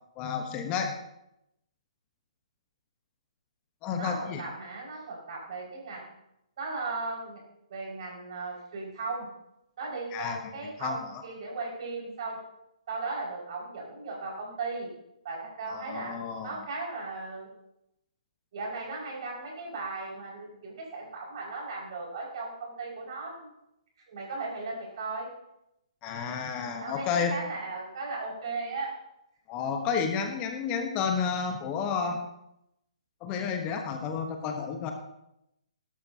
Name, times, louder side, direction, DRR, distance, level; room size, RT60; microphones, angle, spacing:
voice 1, 0.2-0.9 3.8-4.4 10.1-10.4 10.8-11.2 15.7-16.6 26.0-27.4 29.5-32.2 33.2-34.9, left 6 dB, 25° left, 5 dB, 1.1 m, -31 dB
voice 2, 4.0-6.1 6.6-7.4 7.7-9.3 9.8-12.4 12.9-14.9 15.2-17.5 18.5-23.5 24.1-25.3 26.8-28.9, right 3 dB, 50° right, -2 dB, 5.6 m, -37 dB
17.0 x 12.0 x 2.9 m, 0.84 s
figure-of-eight pair, 130°, 4 cm